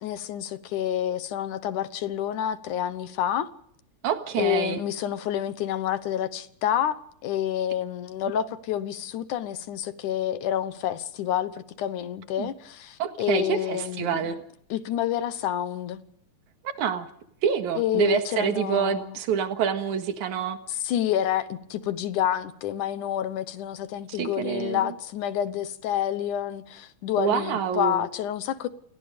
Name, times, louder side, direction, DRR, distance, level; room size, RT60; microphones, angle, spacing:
voice 1, 0.0-3.5 4.4-14.3 14.7-16.0 17.8-19.2 20.7-28.7, left 11 dB, 85° left, 2.6 m, -28 dB
voice 2, 4.0-4.8 8.3-8.5 12.4-12.5 13.0-14.4 16.8-17.1 17.4-20.6 24.2-24.9 27.2-28.0, right 8 dB, 75° right, 3.1 m, -27 dB
29.5 x 21.0 x 5.2 m
omnidirectional pair, 3.5 m